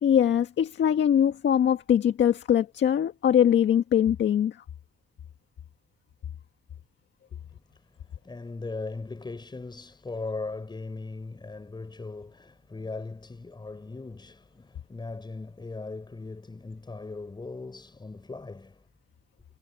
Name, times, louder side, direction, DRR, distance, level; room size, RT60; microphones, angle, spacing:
voice 1, 0.0-4.6, left 9 dB, 65° left, 1.8 m, -22 dB
voice 2, 7.7-18.8, left 3 dB, 20° left, 5.4 m, -39 dB
cardioid pair, 90°, 20 cm